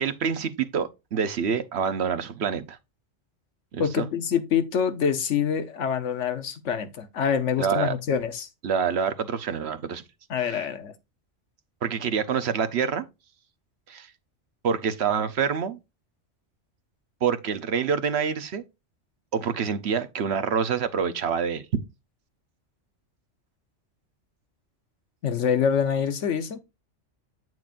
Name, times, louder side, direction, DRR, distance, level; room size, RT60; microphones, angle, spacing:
voice 1, 0.0-2.8 3.7-4.1 7.6-7.9 8.6-10.0 10.4-10.7 11.8-13.1 13.9-14.1 14.6-15.8 17.2-18.6 19.3-21.8, right 7 dB, 60° right, 1.0 m, -26 dB
voice 2, 3.8-8.5 10.3-10.9 25.2-26.6, left 7 dB, 75° left, 1.2 m, -25 dB
8.8 x 6.1 x 2.5 m
omnidirectional pair, 1.3 m